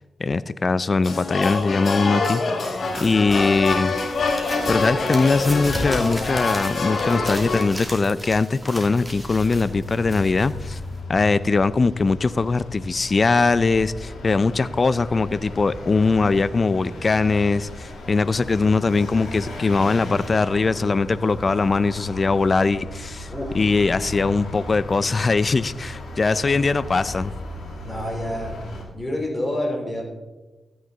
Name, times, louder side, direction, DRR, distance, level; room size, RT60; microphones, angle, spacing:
voice 1, 0.2-4.0 4.7-10.8 11.1-23.3 23.5-27.3, left 4 dB, 40° left, 16 dB, 0.4 m, -21 dB
sound 1, 1.0-7.7, left 3 dB, 65° left, 1.5 m, -25 dB
voice 2, 2.8-3.1 23.3-23.6 26.3-26.4 27.8-28.6 28.9-30.0, left 1 dB, 15° left, 0 dB, 3.5 m, -28 dB
sound 2, 2.8-11.0, equal, ahead, 2.7 m, -35 dB
Vehicle, 9.0-28.8, left 1 dB, 85° left, 2.4 m, -36 dB
13.0 x 9.4 x 3.9 m, 1.1 s
cardioid pair, 80°, 0 cm